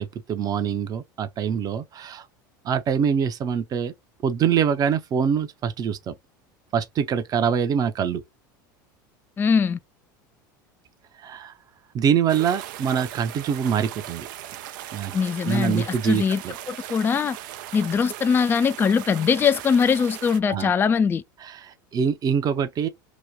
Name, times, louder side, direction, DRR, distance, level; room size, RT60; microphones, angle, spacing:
voice 1, 0.0-2.3 2.6-3.9 4.2-6.1 6.7-8.2 11.2-11.5 11.9-14.3 14.9-15.1 15.4-16.5 20.5-20.7 21.4-22.9, right 7 dB, 35° right, 0.7 m, -24 dB
voice 2, 9.4-9.8 15.1-16.4 16.7-17.4 17.7-21.2, left 6 dB, 20° left, 0.3 m, -21 dB
sound 1, 12.3-20.4, right 12 dB, 70° right, 0.5 m, -38 dB
3.0 x 2.2 x 3.5 m
hypercardioid pair, 95°, 11 cm